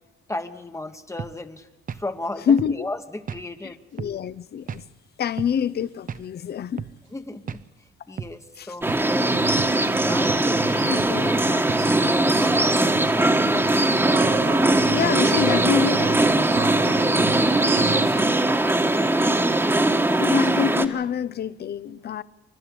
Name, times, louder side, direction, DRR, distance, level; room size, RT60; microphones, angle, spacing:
voice 1, 0.3-3.8 7.1-7.6 8.1-8.9 9.8-13.7 17.1-17.7 18.1-19.3, left 1 dB, 15° left, 1.1 m, -35 dB
sound 1, 1.2-1.4 1.9-2.1 2.6-2.8 3.3-3.5 4.0-4.2 4.7-4.8 5.4-5.6 6.1-6.3 6.8-6.9 7.5-7.6 8.2-8.4 8.9-9.1 9.6-9.8 10.3-10.5 11.0-11.2 11.7-11.9, right 7 dB, 45° right, 0.7 m, -34 dB
voice 2, 2.5-2.9 3.6-4.8 5.2-6.8 8.6-8.7 10.9-11.3 14.9-16.4 20.2-22.2, left 8 dB, 55° left, 0.7 m, -26 dB
sound 2, 8.8-20.9, right 1 dB, 10° right, 1.4 m, -20 dB
sound 3, 9.3-18.1, right 7 dB, 70° right, 1.2 m, -33 dB
28.5 x 12.0 x 8.6 m
cardioid pair, 90°, 20 cm